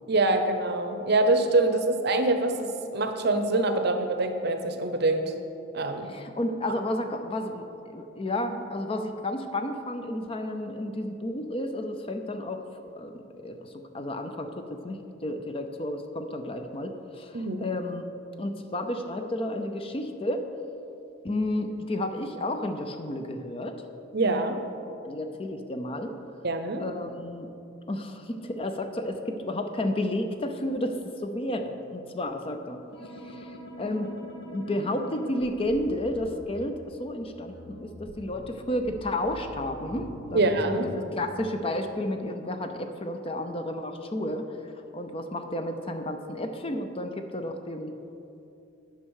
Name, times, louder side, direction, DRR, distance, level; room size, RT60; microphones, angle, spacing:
voice 1, 0.1-5.2 5.7-6.1 17.3-17.6 24.1-24.6 26.4-26.8 40.3-40.9, right 2 dB, 50° right, 7 dB, 0.7 m, -25 dB
voice 2, 6.1-18.1 18.4-20.4 21.2-23.8 25.0-26.1 26.8-27.5 27.9-34.1 34.5-44.5 44.9-48.0, left 1 dB, 30° left, 6 dB, 0.5 m, -32 dB
sound 1, 32.9-36.7 37.5-41.1, equal, 75° left, 1.1 m, -44 dB
9.3 x 5.5 x 6.3 m, 2.8 s
head